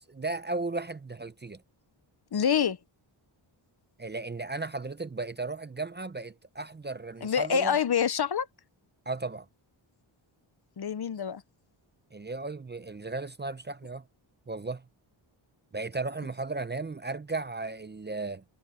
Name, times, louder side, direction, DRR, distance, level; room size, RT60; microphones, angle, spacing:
voice 1, 0.0-1.6 4.0-7.8 9.1-9.5 12.1-14.0 14.5-14.8 15.7-18.4, right 3 dB, 20° right, 0.6 m, -35 dB
voice 2, 2.3-2.8 7.2-8.5 10.8-11.4, left 8 dB, 50° left, 1.0 m, -26 dB
wide cardioid pair, 100°, 49 cm